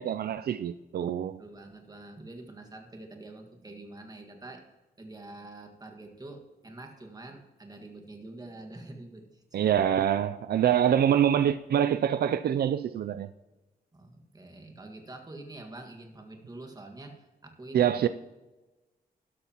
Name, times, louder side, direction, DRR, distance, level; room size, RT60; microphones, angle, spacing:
voice 1, 0.0-1.4 9.5-13.3 17.7-18.1, right 9 dB, 75° right, 0.4 m, -25 dB
voice 2, 1.4-4.6 5.0-9.6 13.9-17.9, right 2 dB, 25° right, 1.7 m, -46 dB
13.0 x 12.0 x 3.0 m
wide cardioid pair, 130°, 16 cm